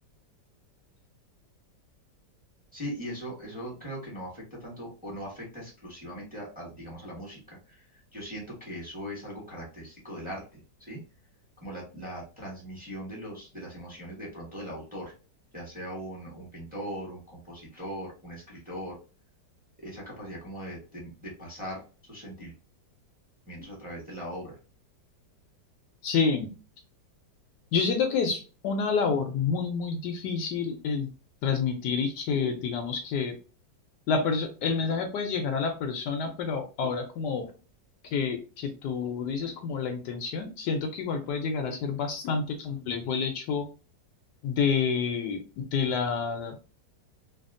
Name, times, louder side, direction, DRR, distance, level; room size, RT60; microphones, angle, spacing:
voice 1, 2.7-11.0 11.6-15.1 15.5-19.0 19.8-22.5 23.5-24.6, equal, 5° right, -3 dB, 1.1 m, -40 dB
voice 2, 26.0-26.5 27.7-31.1 31.4-33.3 34.1-37.5 38.1-43.6 44.4-46.5, left 5 dB, 75° left, 5 dB, 1.1 m, -28 dB
3.4 x 2.3 x 2.5 m, 0.34 s
omnidirectional pair, 1.9 m